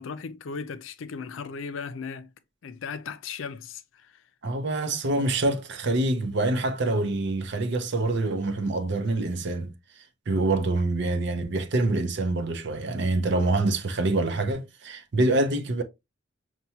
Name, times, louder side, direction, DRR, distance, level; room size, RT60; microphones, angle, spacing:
voice 1, 0.0-2.3 2.6-4.2, left 5 dB, 80° left, 0.4 m, -37 dB
voice 2, 4.4-15.8, right 2 dB, 60° right, 0.6 m, -26 dB
5.7 x 2.2 x 2.7 m
head